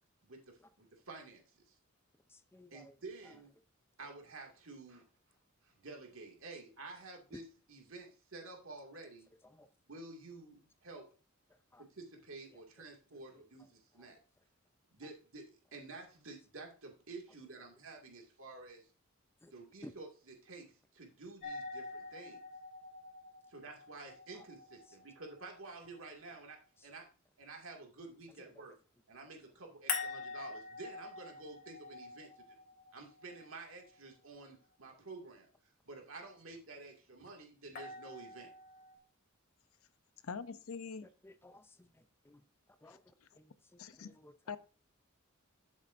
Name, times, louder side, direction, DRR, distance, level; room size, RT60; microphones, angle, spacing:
voice 1, 0.2-1.8 2.7-3.5 4.0-5.0 5.6-9.3 9.9-11.1 11.8-14.2 14.9-18.9 19.5-22.4 23.5-27.1 27.4-28.7 29.1-32.6 32.9-35.5 35.8-38.5, right 3 dB, 70° right, 2.3 m, -51 dB
voice 2, 2.3-2.9 9.4-9.7 11.7-11.8 19.4-19.5 19.8-19.9 28.6-28.7 41.2-41.9 42.8-43.0 43.4-44.3, left 1 dB, 10° left, 0.5 m, -56 dB
sound 1, 21.4-26.4 29.9-34.0 37.8-39.0, left 5 dB, 50° left, 2.1 m, -45 dB
voice 3, 40.3-41.1 43.8-44.2 44.5-44.6, left 5 dB, 85° left, 0.7 m, -43 dB
11.5 x 7.3 x 2.6 m
head